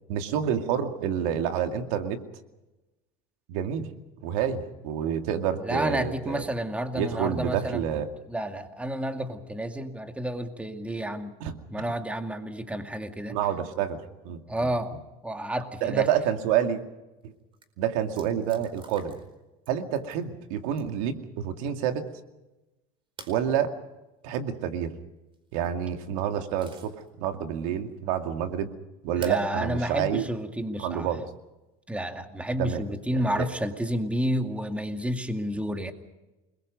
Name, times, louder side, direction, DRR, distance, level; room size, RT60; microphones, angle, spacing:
voice 1, 0.1-2.2 3.5-3.9 4.2-6.4 6.9-8.1 11.4-11.6 13.3-14.4 15.8-16.8 17.2-17.3 17.8-19.2 19.7-22.1 23.3-23.8 24.2-24.9 25.5-28.7 29.0-30.2 30.8-31.2 32.6-32.8 33.1-33.5, right 9 dB, 80° right, 6 dB, 2.3 m, -28 dB
voice 2, 5.6-11.4 11.7-13.4 14.5-14.9 15.2-16.1 29.2-31.1 31.9-35.9, equal, 5° right, 6 dB, 2.2 m, -30 dB
sound 1, 17.2-17.3 17.5-17.7 18.1-19.3 19.6-20.2 20.7-21.1 23.2-23.4 25.3-25.7 26.2-27.1 27.6-27.7 29.2-29.5 30.6-30.7 32.7-33.2, right 4 dB, 30° right, 4.6 m, -49 dB
29.0 x 21.5 x 5.3 m, 1.0 s
supercardioid pair, 115°, 18 cm